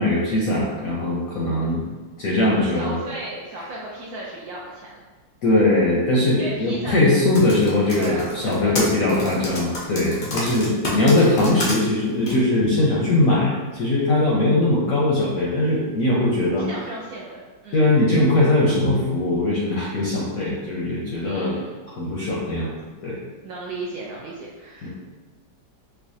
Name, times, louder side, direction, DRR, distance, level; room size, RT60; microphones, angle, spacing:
voice 1, 0.0-1.8 2.2-3.0 5.4-16.7 17.7-21.6 22.0-22.7 23.0-23.2 24.8-24.9, left 2 dB, 70° left, -5 dB, 0.8 m, -20 dB
voice 2, 2.7-5.0 6.4-7.3 7.9-9.3 10.3-10.8 16.6-17.8 21.2-21.8 23.4-24.9, right 2 dB, 75° right, -4 dB, 0.9 m, -35 dB
Typing, 7.1-11.7 12.3-12.4, left 1 dB, 85° left, 0.4 m, -29 dB
4.7 x 2.1 x 2.7 m, 1.3 s
omnidirectional pair, 2.0 m